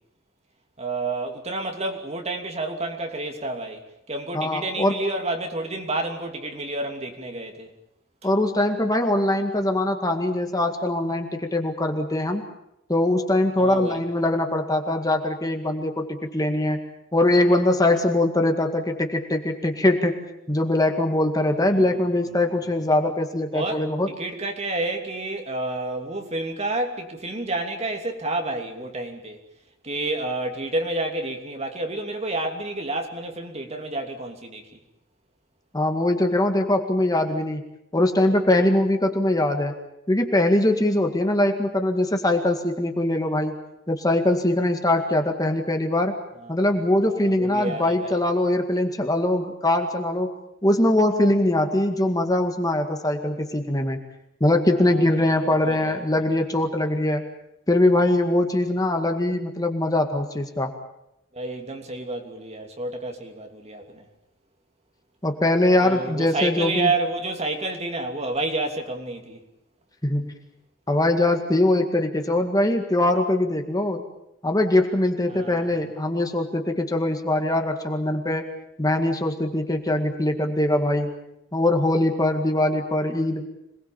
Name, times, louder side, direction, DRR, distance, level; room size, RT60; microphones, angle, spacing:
voice 1, 0.8-7.7 13.6-13.9 21.7-22.0 23.5-29.4 29.8-34.8 46.4-46.7 47.0-48.2 54.7-56.1 61.3-64.1 65.8-69.4 75.3-75.8, right 2 dB, 35° right, 3.0 m, -30 dB
voice 2, 4.3-5.0 8.2-12.4 12.9-16.8 17.1-20.2 20.5-24.1 35.7-37.6 37.9-39.7 40.1-43.6 43.9-46.2 46.5-50.3 50.6-54.0 54.4-57.2 57.7-60.7 65.2-66.9 70.0-70.3 70.9-74.1 74.4-78.5 78.8-81.1 81.5-83.5, left 1 dB, 20° left, 2.0 m, -22 dB
26.5 x 20.5 x 7.2 m
head